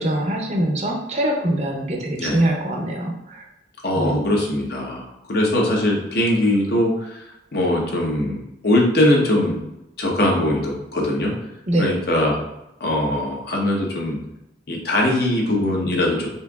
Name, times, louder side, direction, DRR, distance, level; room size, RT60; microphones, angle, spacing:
voice 1, 0.0-3.4 4.0-4.2 11.7-12.0, right 1 dB, 40° right, 0 dB, 0.7 m, -23 dB
voice 2, 3.8-7.3 7.5-9.6 10.0-11.3 11.8-12.4 12.8-14.2 14.7-16.3, left 1 dB, 60° left, -1 dB, 0.9 m, -21 dB
4.4 x 3.5 x 2.3 m, 0.88 s
head